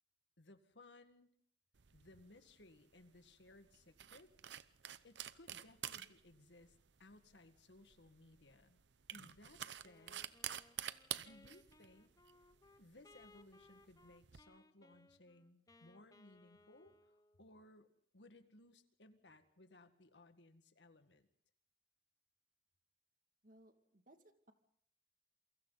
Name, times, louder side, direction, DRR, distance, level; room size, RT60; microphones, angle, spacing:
voice 1, 0.4-1.3 1.9-4.3 5.0-8.8 9.1-10.2 11.2-12.1 12.8-21.3, left 2 dB, 85° left, 8 dB, 1.9 m, -63 dB
sound 1, 1.8-14.4, right 11 dB, 85° right, 0.8 m, -50 dB
Wind instrument woodwind instrument, 9.8-17.5, left 2 dB, 20° left, 1.0 m, -66 dB
voice 2, 23.4-24.5, right 1 dB, 50° right, 6 dB, 2.4 m, -65 dB
28.5 x 23.5 x 4.1 m, 0.63 s
head